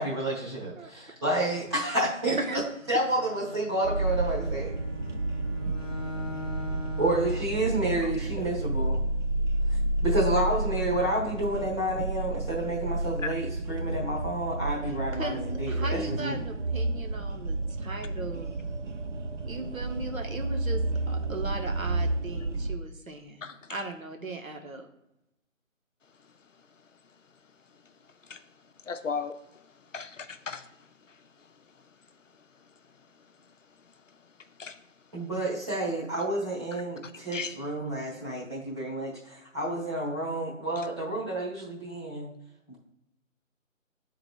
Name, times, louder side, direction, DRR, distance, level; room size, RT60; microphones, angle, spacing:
voice 1, 0.0-2.6 2.9-4.7 7.0-9.0 9.7-16.3 35.1-42.3 42.7-42.8, right 1 dB, 20° right, -6 dB, 1.2 m, -30 dB
Bowed string instrument, 2.8-7.6, left 2 dB, 50° right, 1.6 m, -41 dB
sound 1, 3.8-22.8, right 2 dB, 65° right, 0.6 m, -31 dB
voice 2, 14.8-18.7 19.5-23.4 23.7-24.9, right 2 dB, 80° right, 4 dB, 1.0 m, -38 dB
voice 3, 28.9-29.3 29.9-30.6 34.6-34.7 37.3-37.5, left 5 dB, 65° left, 9 dB, 0.6 m, -34 dB
11.0 x 3.8 x 2.2 m, 0.84 s
figure-of-eight pair, 155°, 40 cm